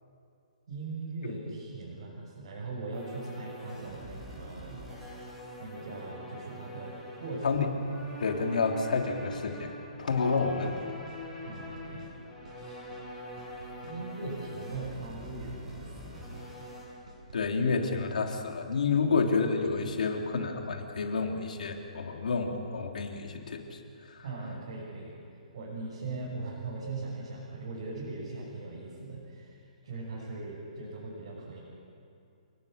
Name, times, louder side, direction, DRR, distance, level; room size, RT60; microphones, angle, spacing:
voice 1, 0.7-4.8 5.6-7.6 11.4-12.1 12.5-13.0 13.8-16.4 19.0-19.1 24.2-25.1 25.5-31.6, right 3 dB, 50° right, -6 dB, 6.7 m, -40 dB
sound 1, 2.9-16.8, equal, ahead, 6.1 m, -44 dB
voice 2, 8.2-9.7 10.0-11.0 17.3-24.2, left 4 dB, 75° left, 2 dB, 3.3 m, -29 dB
sound 2, 10.1-10.3 10.6-10.8 11.1-11.2 11.5-12.1 12.4-12.6 12.9-13.1 13.4-14.0 14.3-14.5 14.8-14.9 15.2-15.8 16.1-16.3 16.6-16.8 17.1-17.4, right 4 dB, 70° right, 7.7 m, -52 dB
29.5 x 20.0 x 6.7 m, 2.5 s
hypercardioid pair, 175°, 4 cm